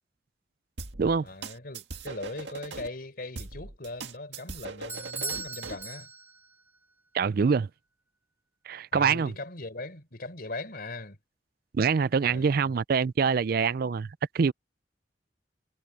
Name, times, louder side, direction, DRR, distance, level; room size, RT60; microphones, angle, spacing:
sound 1, 0.8-2.9 3.4-5.9, right 3 dB, 85° right, 1.9 m, -40 dB
voice 1, 1.2-6.1 8.9-11.2 12.2-12.7, left 2 dB, 55° left, 4.2 m, -40 dB
Bell / Doorbell, 4.9-6.6, right 4 dB, 15° right, 2.6 m, -37 dB
voice 2, 7.1-7.7 8.7-9.3 11.7-14.1 14.3-14.5, right 5 dB, 55° right, 0.4 m, -25 dB
head